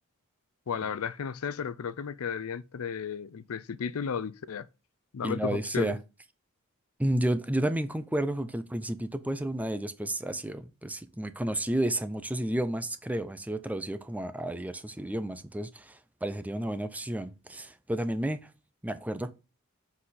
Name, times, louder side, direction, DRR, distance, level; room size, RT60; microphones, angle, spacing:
voice 1, 0.7-4.7 5.1-5.9, left 6 dB, 75° left, 0.5 m, -34 dB
voice 2, 5.2-6.0 7.0-18.5 18.8-19.3, right 1 dB, 5° right, 0.5 m, -31 dB
7.5 x 4.2 x 4.1 m
head